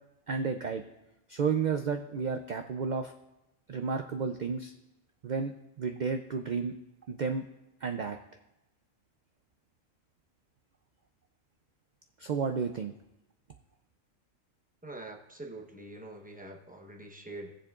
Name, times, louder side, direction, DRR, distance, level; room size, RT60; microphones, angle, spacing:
voice 1, 0.3-0.8 1.3-3.1 3.7-4.7 5.2-6.7 7.1-7.4 7.8-8.2 12.2-12.9, right 5 dB, 70° right, 6 dB, 0.4 m, -32 dB
voice 2, 14.8-17.6, right 2 dB, 10° right, 1 dB, 0.7 m, -45 dB
18.5 x 7.2 x 2.4 m, 0.95 s
omnidirectional pair, 1.4 m